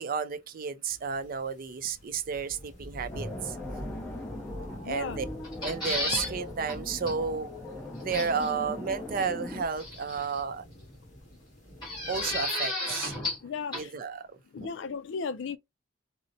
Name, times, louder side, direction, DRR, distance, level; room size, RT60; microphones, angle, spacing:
voice 1, 0.0-3.6 4.8-5.3 5.6-7.5 8.0-10.6 12.1-13.1 13.7-14.4, right 5 dB, 45° right, 0.4 m, -32 dB
sound 1, 0.9-12.5, equal, 40° left, 1.5 m, -44 dB
sound 2, 3.1-9.6, left 2 dB, 10° left, 0.7 m, -41 dB
voice 2, 4.8-5.2 13.4-13.9 14.5-15.6, left 5 dB, 70° left, 0.4 m, -35 dB
sound 3, 5.4-6.3 6.7-6.8 7.1-7.2 8.1-8.5 9.8-10.4 11.8-13.5 13.7-13.8, left 2 dB, 25° left, 1.9 m, -32 dB
3.9 x 2.1 x 2.6 m
head